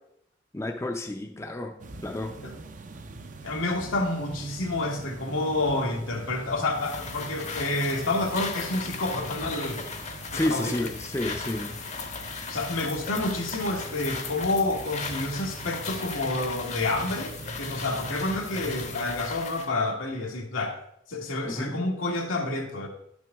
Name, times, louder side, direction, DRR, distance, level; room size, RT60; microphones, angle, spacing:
voice 1, 0.5-2.4 10.3-11.8 21.4-21.7, left 1 dB, 15° left, 4 dB, 0.5 m, -30 dB
sound 1, 1.8-19.1, right 2 dB, 40° right, 0.5 m, -43 dB
voice 2, 3.4-9.8 10.3-10.7 12.5-17.3 17.6-20.8 21.1-22.9, left 2 dB, 90° left, 2 dB, 1.5 m, -29 dB
sound 2, 6.7-19.7, left 5 dB, 35° left, 0.8 m, -37 dB
11.5 x 6.0 x 3.5 m, 0.76 s
head